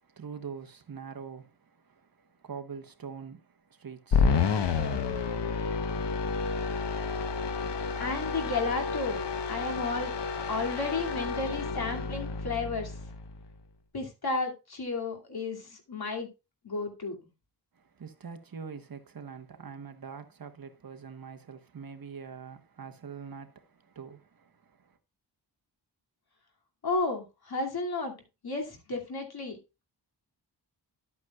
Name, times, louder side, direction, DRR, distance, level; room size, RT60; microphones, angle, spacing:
voice 1, 0.0-5.4 17.7-25.0, right 6 dB, 55° right, 1.1 m, -44 dB
sound 1, 4.1-13.5, left 5 dB, 80° left, 1.0 m, -30 dB
voice 2, 8.0-9.2 9.5-10.1 10.5-13.0 13.9-16.3 16.6-17.2 26.8-28.1 28.4-29.6, left 3 dB, 60° left, 2.5 m, -32 dB
12.0 x 8.3 x 2.4 m
wide cardioid pair, 105°, 42 cm